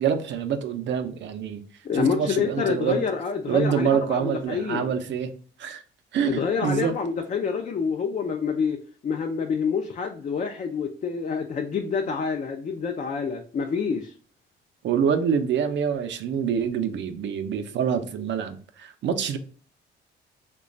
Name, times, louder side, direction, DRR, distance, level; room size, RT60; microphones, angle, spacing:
voice 1, 0.0-1.6 1.9-3.1 3.5-5.3 5.6-5.8 6.1-7.0 14.8-19.4, right 7 dB, 65° right, 0.5 m, -26 dB
voice 2, 1.8-4.9 6.3-14.1, left 6 dB, 40° left, 0.4 m, -27 dB
3.0 x 2.2 x 3.8 m
cardioid pair, 90°, 20 cm